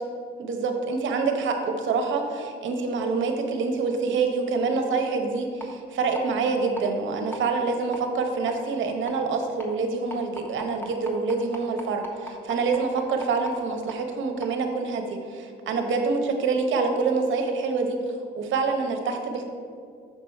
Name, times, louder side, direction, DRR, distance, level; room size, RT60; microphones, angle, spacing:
voice 1, 0.4-18.0 18.4-19.4, right 4 dB, 75° right, 4 dB, 1.0 m, -26 dB
sound 1, 5.6-5.7 6.1-6.2 6.8-6.9 7.3-7.4 7.9-8.0 8.5-8.6 9.1-9.2 9.6-9.7 10.1-13.5 13.9-14.0 14.4-14.5, right 1 dB, 10° left, 1.2 m, -38 dB
6.1 x 5.9 x 4.5 m, 2.3 s
cardioid pair, 90°, 20 cm